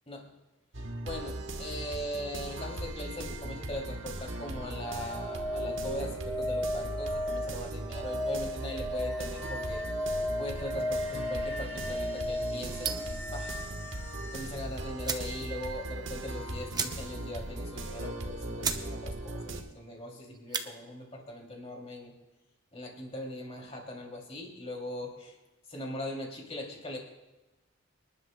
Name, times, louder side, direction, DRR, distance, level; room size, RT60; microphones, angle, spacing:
sound 1, 0.7-19.6, right 2 dB, 65° right, 1.3 m, -38 dB
voice 1, 1.0-9.8 10.4-13.6 14.2-22.1 22.7-25.4 25.7-27.0, left 1 dB, 30° left, 1 dB, 2.7 m, -40 dB
sound 2, 4.7-14.5 16.8-16.9, left 1 dB, 5° left, 0.3 m, -35 dB
sound 3, 12.8-13.2 14.5-14.6 15.0-15.4 15.7-15.8 16.1-16.2 16.7-17.3 17.7-17.8 18.2-18.3 18.6-18.9 19.2-19.6 20.3-20.7, right 5 dB, 20° right, 0.7 m, -34 dB
26.5 x 11.0 x 2.2 m, 1.1 s
head